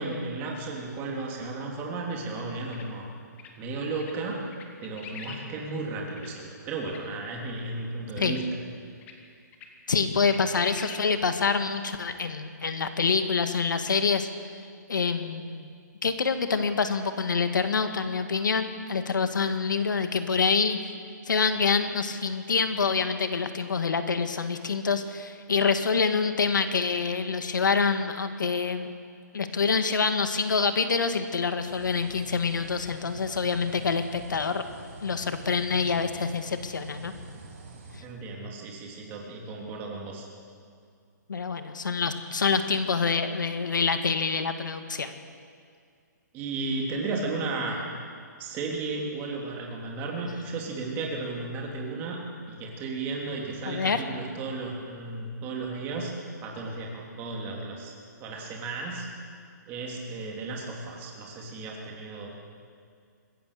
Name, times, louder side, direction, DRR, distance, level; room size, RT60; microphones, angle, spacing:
voice 1, 0.0-3.0 3.6-4.4 4.8-8.4 38.0-40.3 46.3-47.8 48.4-56.1 56.4-57.9 58.2-59.1 59.7-62.4, right 3 dB, 20° right, -1 dB, 3.2 m, -34 dB
sound 1, 2.7-2.9 3.4-3.5 4.0-4.1 4.5-5.4 5.8-5.9 6.2-6.3 6.9-7.0 8.3-8.4 9.0-9.1 9.5-9.7 10.0-11.0 11.4-11.5 13.8-13.9, left 6 dB, 15° left, 1.6 m, -43 dB
voice 2, 9.9-14.3 14.9-15.7 16.0-20.8 21.3-28.9 29.3-34.6 35.0-37.1 41.3-45.2 53.7-54.0, left 5 dB, 90° left, 8 dB, 2.0 m, -26 dB
sound 2, 31.6-38.0, right 2 dB, 45° right, 4.7 m, -46 dB
25.5 x 15.0 x 6.8 m, 2.2 s
hypercardioid pair, 160°, 10 cm